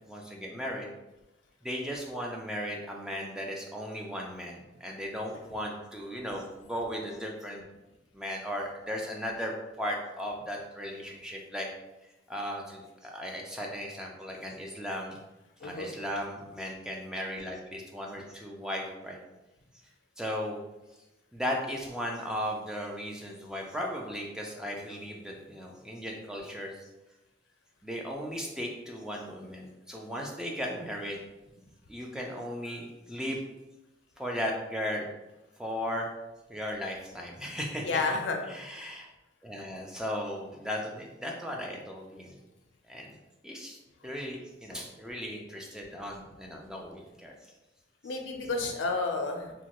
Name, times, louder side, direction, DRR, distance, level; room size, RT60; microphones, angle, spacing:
voice 1, 0.1-0.9 1.6-7.6 8.1-11.7 12.3-15.2 15.6-19.2 20.2-20.6 21.3-26.7 27.8-31.2 31.9-33.4 34.2-35.1 35.6-36.1 36.5-37.9 38.5-39.1 39.4-42.4 42.9-43.1 43.4-43.8 44.0-47.3, equal, 5° right, -1 dB, 0.3 m, -36 dB
voice 2, 15.6-15.9 37.8-38.4 44.7-44.8 48.0-49.5, left 3 dB, 85° left, 3 dB, 0.5 m, -31 dB
2.9 x 2.1 x 2.9 m, 1.0 s
head